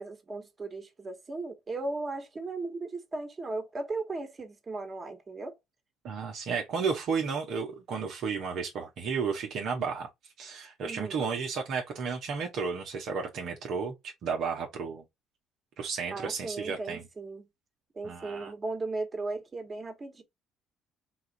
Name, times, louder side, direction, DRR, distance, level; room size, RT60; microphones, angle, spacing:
voice 1, 0.0-5.6 10.8-11.2 16.1-17.5 17.9-20.2, right 3 dB, 35° right, 1.4 m, -36 dB
voice 2, 6.0-10.1 10.4-15.0 15.8-17.0 18.0-18.5, right 5 dB, 60° right, 0.9 m, -33 dB
4.1 x 2.5 x 4.2 m
supercardioid pair, 65°, 0 cm